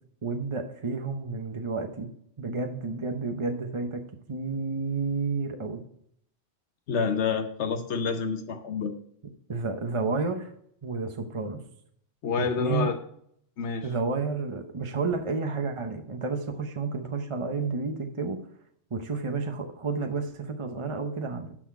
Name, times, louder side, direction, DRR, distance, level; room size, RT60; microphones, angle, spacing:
voice 1, 0.2-2.1 2.4-4.0 4.3-5.8 9.5-10.5 10.8-11.6 12.4-12.9 13.8-18.4 18.9-21.6, right 4 dB, 30° right, 5 dB, 0.7 m, -31 dB
voice 2, 6.9-8.9 12.2-13.0 13.6-13.9, left 5 dB, 75° left, 7 dB, 1.0 m, -28 dB
12.0 x 4.2 x 4.6 m, 0.68 s
omnidirectional pair, 1.2 m